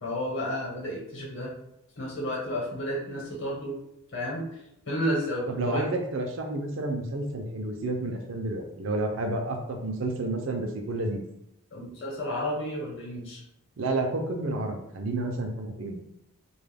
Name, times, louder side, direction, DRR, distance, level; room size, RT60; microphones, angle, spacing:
voice 1, 0.0-1.5 2.0-3.8 4.1-4.4 4.8-5.8 11.7-13.4, equal, 60° left, -3 dB, 0.9 m, -31 dB
voice 2, 5.5-11.2 13.8-16.0, right 2 dB, 65° right, 3 dB, 0.4 m, -30 dB
2.3 x 2.1 x 3.2 m, 0.82 s
head